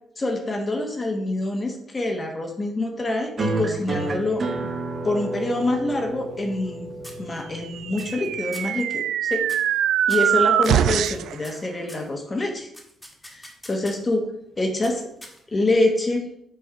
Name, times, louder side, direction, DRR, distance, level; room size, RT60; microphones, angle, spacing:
voice 1, 0.2-4.7 5.0-6.9 7.2-9.5 10.1-12.7 13.3-14.3 14.6-15.0 15.5-16.3, left 2 dB, 25° left, 3 dB, 1.2 m, -26 dB
sound 1, 3.4-8.4, right 2 dB, 40° right, 1.1 m, -30 dB
sound 2, 5.8-6.7 7.0-7.6 8.0-8.3 8.5-8.8 9.4-9.8 10.1-12.1 12.7-14.1 14.8-15.7, left 1 dB, 10° left, 1.6 m, -44 dB
sound 3, 7.7-11.4, right 10 dB, 80° right, 0.3 m, -22 dB
6.6 x 4.6 x 4.8 m, 0.74 s
cardioid pair, 90°, 0 cm